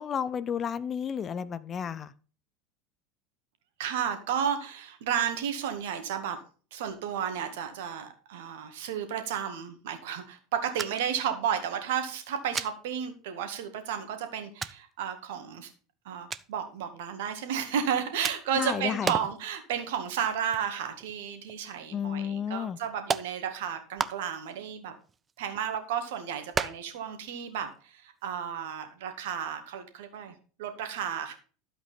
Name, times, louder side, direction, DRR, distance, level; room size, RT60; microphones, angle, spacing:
voice 1, 0.0-2.1 18.6-19.1 21.9-22.8, left 8 dB, 30° left, 16 dB, 0.6 m, -32 dB
voice 2, 3.8-6.4 6.7-15.7 16.1-24.9 25.4-31.3, right 8 dB, 60° right, 8 dB, 1.9 m, -33 dB
sound 1, 10.8-11.2 11.5-11.6 12.5-12.7 13.6-13.7 14.6-14.8 16.3-16.5 18.2-18.6 19.0-19.4 19.8-20.0 20.3-21.2 21.5-21.6 22.4-22.5 23.1-23.3 24.0-24.5 25.0-25.8 26.5-27.0 27.3-27.4 27.7-27.8 28.2-28.4, right 5 dB, 20° right, 0.6 m, -33 dB
12.0 x 8.0 x 4.1 m, 0.39 s
figure-of-eight pair, 80°, 0 cm